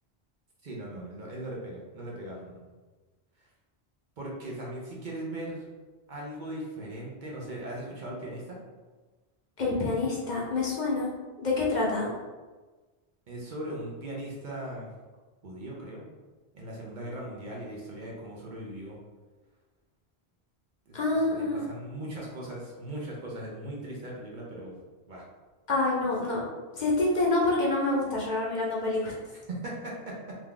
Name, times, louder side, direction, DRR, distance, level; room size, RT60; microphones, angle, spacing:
voice 1, 0.6-2.6 4.2-5.6 6.1-8.6 13.3-14.9 15.4-16.0 16.5-19.0 20.9-24.8 25.1-25.2 29.5-30.4, right 1 dB, 55° right, -3 dB, 0.7 m, -39 dB
voice 2, 9.6-11.1 11.4-12.1 20.9-21.7 25.7-26.4 26.7-29.1, left 2 dB, 50° left, -4 dB, 0.7 m, -27 dB
2.9 x 2.3 x 3.6 m, 1.3 s
omnidirectional pair, 1.0 m